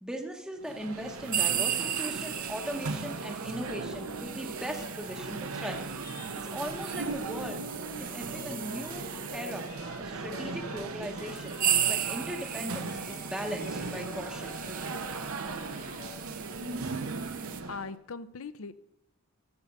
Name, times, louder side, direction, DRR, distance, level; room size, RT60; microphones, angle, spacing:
voice 1, 0.0-5.9 6.4-7.6 8.0-9.1 9.3-11.6 11.9-14.6, equal, 5° right, 3 dB, 0.9 m, -39 dB
sound 1, 0.6-17.9, right 3 dB, 85° right, 1.0 m, -38 dB
sound 2, 1.3-9.7 10.5-10.6 11.2-17.6, right 10 dB, 40° right, 0.7 m, -36 dB
sound 3, 2.2-7.3 7.6-12.1 12.3-16.2, left 4 dB, 45° left, 1.0 m, -51 dB
voice 2, 17.4-18.7, left 4 dB, 75° left, 14 dB, 0.6 m, -40 dB
13.5 x 4.9 x 6.5 m, 0.83 s
head